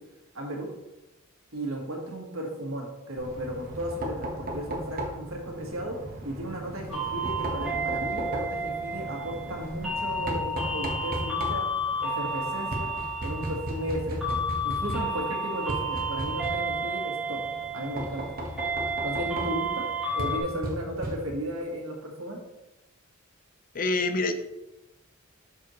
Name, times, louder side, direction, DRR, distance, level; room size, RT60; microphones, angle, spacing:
voice 1, 0.3-0.7 1.5-6.0 6.2-11.7 12.0-12.9 13.2-17.4 17.7-18.2 19.0-19.9 20.1-22.4, equal, 75° right, 1 dB, 1.7 m, -35 dB
Knock, 3.2-21.6, equal, 45° right, 1.3 m, -37 dB
sound 1, 6.9-20.4, right 1 dB, ahead, 2.1 m, -32 dB
voice 2, 23.7-24.3, left 3 dB, 40° left, 8 dB, 0.5 m, -26 dB
7.5 x 6.3 x 3.1 m, 0.99 s
head